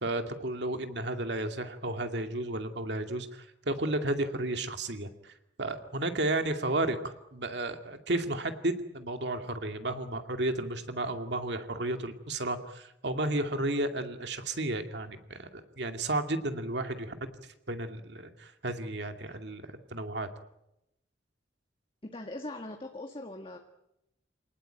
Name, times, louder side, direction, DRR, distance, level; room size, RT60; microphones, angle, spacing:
voice 1, 0.0-5.3 5.6-17.3 17.7-19.6 19.9-20.3, right 2 dB, 65° right, 6 dB, 2.4 m, -33 dB
voice 2, 22.0-23.6, left 2 dB, 30° left, 4 dB, 1.7 m, -40 dB
27.5 x 19.0 x 9.2 m, 0.86 s
head